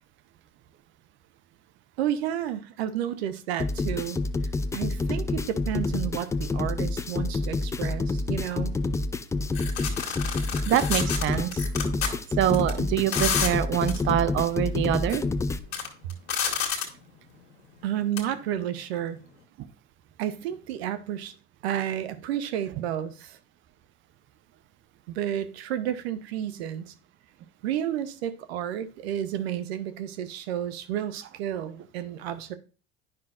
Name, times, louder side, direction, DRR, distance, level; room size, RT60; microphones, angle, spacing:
voice 1, 2.0-4.2 4.7-8.7 17.8-19.2 20.2-21.3 21.6-23.4 25.1-26.9 27.6-32.5, right 10 dB, 75° right, 0.7 m, -31 dB
sound 1, 3.6-15.6, left 3 dB, 10° left, 0.3 m, -28 dB
sound 2, 9.5-12.1 12.5-12.7 13.1-13.5 13.9-14.0 14.9-15.2 15.6-17.0 18.2-18.3, left 7 dB, 80° left, 1.6 m, -29 dB
voice 2, 10.7-11.7 12.1-15.2, right 11 dB, 40° right, 0.6 m, -25 dB
9.8 x 5.6 x 2.5 m
hypercardioid pair, 80°, 31 cm